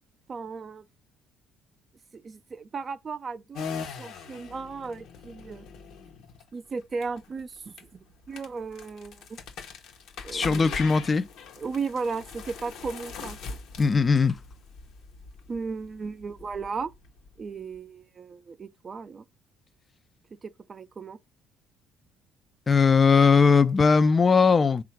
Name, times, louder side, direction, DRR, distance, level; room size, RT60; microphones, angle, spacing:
voice 1, 0.3-0.9 2.1-3.7 4.0-5.7 6.5-7.9 8.3-9.4 10.2-10.9 11.6-13.6 15.5-16.9 17.4-19.2 20.4-21.2, right 4 dB, 40° right, 0.4 m, -35 dB
sound 1, 3.5-17.8, left 5 dB, 70° left, 0.9 m, -42 dB
voice 2, 10.3-11.3 13.8-14.4 22.7-24.8, left 5 dB, 35° left, 0.4 m, -19 dB
3.7 x 2.4 x 4.4 m
supercardioid pair, 80°, 0 cm